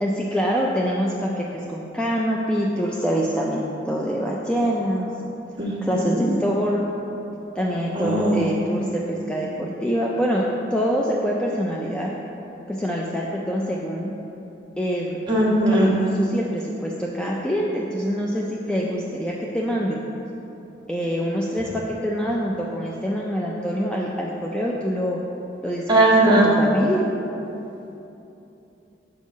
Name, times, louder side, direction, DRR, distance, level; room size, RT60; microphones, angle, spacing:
voice 1, 0.0-5.1 5.8-6.8 7.6-10.4 10.7-12.1 12.7-14.1 14.8-15.2 15.7-20.0 20.9-25.2 25.6-25.8 26.2-27.0, equal, 5° left, -3 dB, 0.4 m, -25 dB
voice 2, 5.6-6.2 7.9-8.4 15.3-15.9 25.9-26.5, right 1 dB, 25° right, -6 dB, 1.4 m, -19 dB
5.4 x 4.5 x 6.3 m, 3.0 s
head